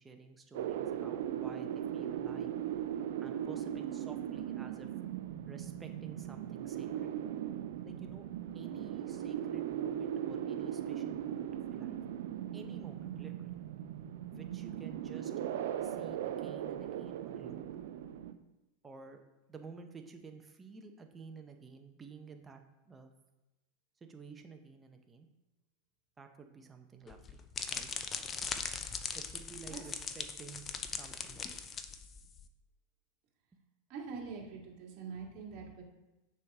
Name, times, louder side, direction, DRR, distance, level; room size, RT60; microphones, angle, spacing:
voice 1, 0.0-2.5 3.2-4.9 5.5-7.1 7.8-12.0 12.5-13.5 14.3-15.3 15.8-17.6 18.8-19.2 19.5-22.6 22.9-23.1 24.1-25.3 26.2-27.4 27.7-27.9 29.1-30.6 31.0-31.6 33.5-33.6, right 5 dB, 20° right, 5 dB, 0.8 m, -52 dB
sound 1, 0.5-18.3, right 10 dB, 70° right, 0.4 m, -38 dB
sound 2, 27.1-32.4, left 6 dB, 25° left, 0.5 m, -40 dB
voice 2, 33.9-35.8, right 5 dB, 45° right, -3 dB, 2.1 m, -44 dB
6.8 x 4.8 x 3.6 m, 1.0 s
hypercardioid pair, 110°, 0 cm